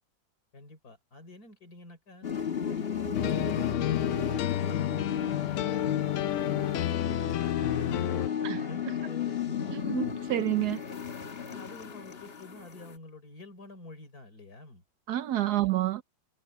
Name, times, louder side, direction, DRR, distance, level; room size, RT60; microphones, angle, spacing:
voice 1, 0.5-5.0 5.6-9.8 11.4-14.8 15.6-15.7, left 2 dB, 55° left, 4.3 m, -48 dB
sound 1, 2.2-12.9, left 8 dB, 35° left, 1.4 m, -33 dB
sound 2, 3.1-8.3, left 13 dB, 90° left, 0.6 m, -30 dB
voice 2, 8.4-8.9 9.7-10.8 15.1-16.0, right 14 dB, 70° right, 1.2 m, -29 dB
omnidirectional pair, 1.9 m